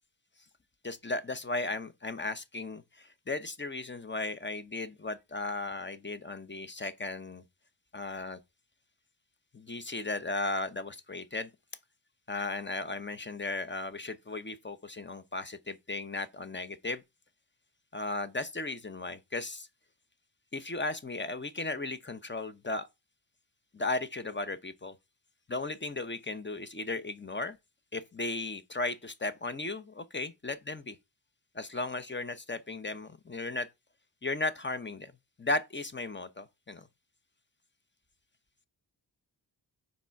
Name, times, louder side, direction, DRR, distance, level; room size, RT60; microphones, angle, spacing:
voice 1, 0.8-7.4 7.9-8.4 9.5-11.5 12.3-17.0 17.9-19.7 20.5-22.9 23.7-25.0 25.5-27.6 27.9-31.0 31.5-33.7 34.2-35.1 35.4-36.9, left 2 dB, 25° left, 0.8 m, -36 dB
5.9 x 4.3 x 5.7 m
wide cardioid pair, 65°, 45 cm